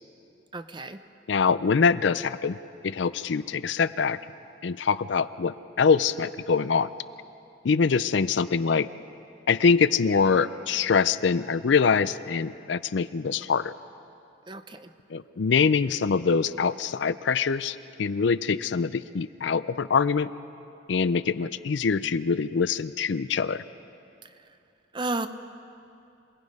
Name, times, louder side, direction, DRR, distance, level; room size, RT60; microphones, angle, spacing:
voice 1, 0.5-1.0 14.5-14.9 24.9-25.3, right 2 dB, 25° right, 10 dB, 0.6 m, -32 dB
voice 2, 1.3-2.6 2.8-4.2 4.6-6.9 7.6-8.9 9.5-13.7 15.1-20.3 20.9-23.6, left 5 dB, 70° left, 15 dB, 0.5 m, -24 dB
27.0 x 18.5 x 5.4 m, 2.7 s
head